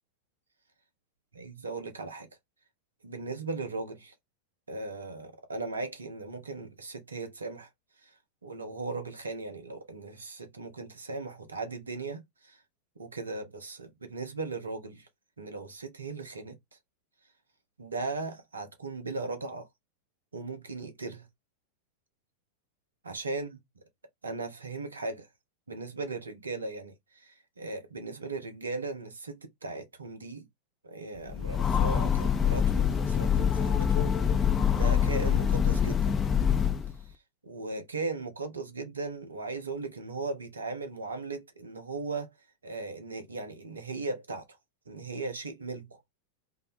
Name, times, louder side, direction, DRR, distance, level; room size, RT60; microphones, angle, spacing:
voice 1, 1.3-2.3 3.0-4.1 4.7-7.7 8.0-8.1 8.4-12.6 13.0-15.1 15.4-16.5 17.8-19.7 20.3-21.3 23.0-23.6 24.2-25.3 25.7-30.5 30.8-34.4 34.7-36.2 37.0-37.1 37.4-42.3 42.6-44.4 44.9-46.0, right 3 dB, 75° right, 0.7 m, -37 dB
Train, 31.3-37.0, left 8 dB, 20° left, 0.5 m, -25 dB
2.8 x 2.0 x 2.4 m
figure-of-eight pair, 90°, 0 cm